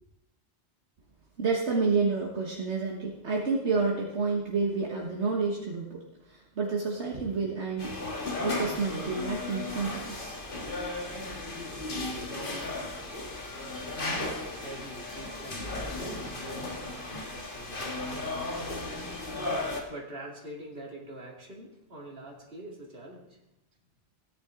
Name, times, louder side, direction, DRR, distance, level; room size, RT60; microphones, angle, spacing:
voice 1, 1.4-10.7, right 4 dB, 75° right, -2 dB, 1.7 m, -30 dB
sound 1, 7.8-19.8, left 2 dB, 50° left, 1.9 m, -35 dB
voice 2, 14.2-23.4, right 1 dB, 55° right, -1 dB, 2.7 m, -46 dB
16.5 x 10.0 x 3.8 m, 0.89 s
omnidirectional pair, 1.2 m